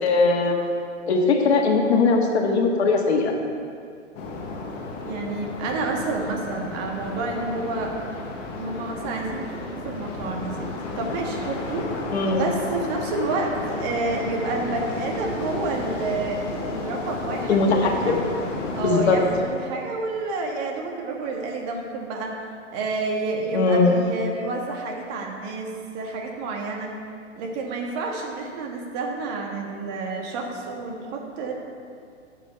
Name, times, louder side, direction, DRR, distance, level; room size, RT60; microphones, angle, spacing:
voice 1, 0.0-0.6 1.1-3.3 12.1-12.4 17.5-18.2 18.8-19.2 23.5-24.0, left 4 dB, 60° left, 1 dB, 1.8 m, -20 dB
sound 1, 4.1-19.4, left 2 dB, 30° left, 1.6 m, -32 dB
voice 2, 5.0-7.9 8.6-10.6 11.0-11.9 12.3-18.2 18.8-22.4 22.7-26.9 27.3-31.5, right 3 dB, 35° right, 1 dB, 1.7 m, -29 dB
12.0 x 7.5 x 4.4 m, 2.3 s
hypercardioid pair, 130°, 37 cm